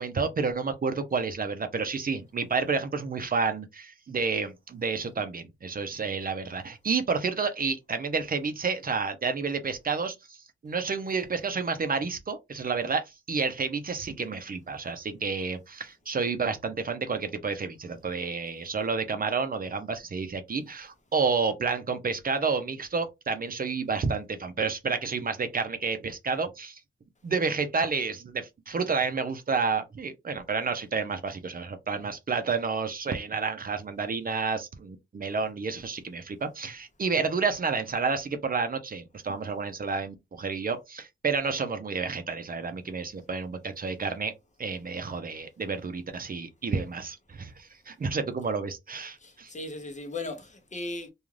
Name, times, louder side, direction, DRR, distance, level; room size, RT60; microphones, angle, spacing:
voice 1, 0.0-10.4 10.6-26.8 27.2-44.3 44.6-49.5, right 4 dB, 45° right, 0.5 m, -30 dB
voice 2, 49.2-51.1, left 2 dB, 35° left, 0.7 m, -37 dB
2.4 x 2.4 x 3.1 m
cardioid pair, 80°, 21 cm